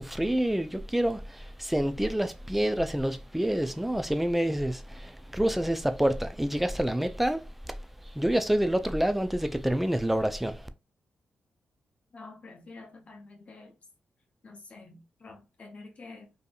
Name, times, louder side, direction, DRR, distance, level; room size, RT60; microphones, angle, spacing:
voice 1, 0.0-7.8 8.1-10.7, right 1 dB, 5° right, 0.3 m, -28 dB
voice 2, 12.1-13.7 14.4-16.3, left 3 dB, 45° left, 0.6 m, -48 dB
2.7 x 2.5 x 2.3 m
cardioid pair, 65°, 3 cm